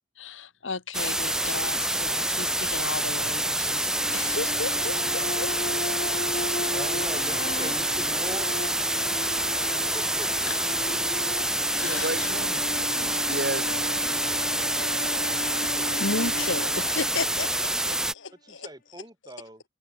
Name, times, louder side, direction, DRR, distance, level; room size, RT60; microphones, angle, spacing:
voice 1, 0.2-5.5 10.5-10.6 11.7-12.3 16.0-18.7 19.2-19.3, left 3 dB, 90° left, 1.8 m, -34 dB
sound 1, 0.9-18.1, right 1 dB, 5° right, 1.1 m, -27 dB
sound 2, 3.8-17.9, left 2 dB, 45° left, 1.4 m, -37 dB
voice 2, 6.6-8.5 9.8-11.2 18.3-19.6, right 1 dB, 20° right, 4.9 m, -41 dB
voice 3, 11.8-14.0, right 2 dB, 60° right, 6.2 m, -34 dB
head